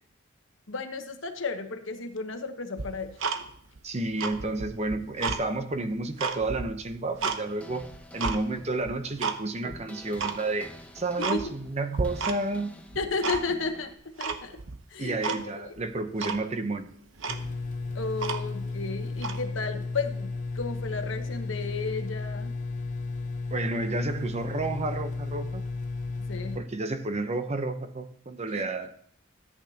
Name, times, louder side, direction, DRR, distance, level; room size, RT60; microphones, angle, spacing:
voice 1, 0.7-3.2 11.2-11.4 12.9-14.6 14.9-15.7 17.9-22.5 26.3-26.6 28.5-28.6, left 4 dB, 65° left, 7 dB, 1.2 m, -33 dB
Tick-tock, 2.8-3.8 4.1-5.4 5.9-7.4 7.8-8.4 8.9-9.4 9.7-9.8 10.2-10.4 10.8-10.9 11.2-11.7 12.0-12.6 12.9-13.7 14.2-14.8 15.2-15.4 15.8-15.9 16.2-16.4 16.9-17.0 17.2-18.7 19.1-19.4, right 5 dB, 70° right, 0.9 m, -32 dB
voice 2, 3.8-7.8 8.1-12.7 15.0-16.9 23.5-25.6 26.5-28.9, right 2 dB, 35° right, 8 dB, 0.8 m, -31 dB
sound 1, 7.4-14.0, left 1 dB, 5° left, 0.8 m, -49 dB
sound 2, 17.3-26.6, left 3 dB, 40° left, 0.8 m, -34 dB
14.0 x 8.6 x 2.9 m, 0.63 s
head